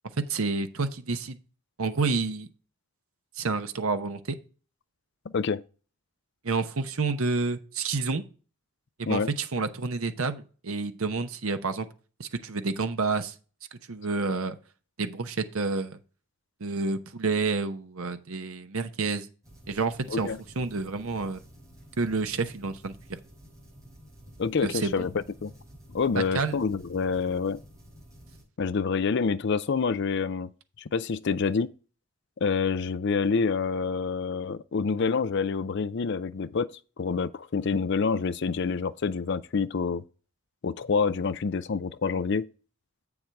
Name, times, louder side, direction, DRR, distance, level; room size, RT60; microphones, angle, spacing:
voice 1, 0.3-1.4 1.8-2.5 3.4-4.4 6.4-8.2 9.0-11.9 12.2-13.3 13.9-14.6 15.0-16.0 16.6-19.3 19.7-20.3 20.6-21.4 22.0-22.9 24.6-25.1 26.2-26.6, right 4 dB, 70° right, 0.9 m, -29 dB
sound 1, 19.4-28.4, equal, 15° right, 5.2 m, -51 dB
voice 2, 24.4-25.5 25.9-27.6 28.6-30.5 30.8-31.7 32.4-36.7 37.0-40.0 40.6-42.5, left 5 dB, 50° left, 0.4 m, -27 dB
7.9 x 7.1 x 3.4 m
head